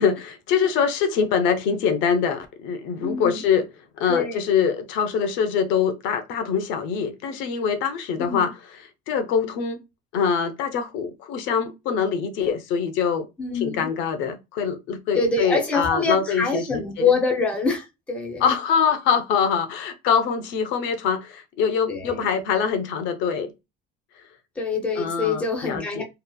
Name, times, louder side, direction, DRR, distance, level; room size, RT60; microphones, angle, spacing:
voice 1, 0.0-3.7 4.0-9.8 10.1-13.3 13.5-17.1 18.4-23.5 24.9-26.0, left 6 dB, 75° left, 0.5 m, -24 dB
voice 2, 3.0-3.4 4.1-4.4 8.2-8.4 13.4-13.9 15.1-18.4 21.9-22.3 24.6-26.0, left 4 dB, 5° left, 0.5 m, -25 dB
2.7 x 2.4 x 2.2 m
cardioid pair, 175°, 20 cm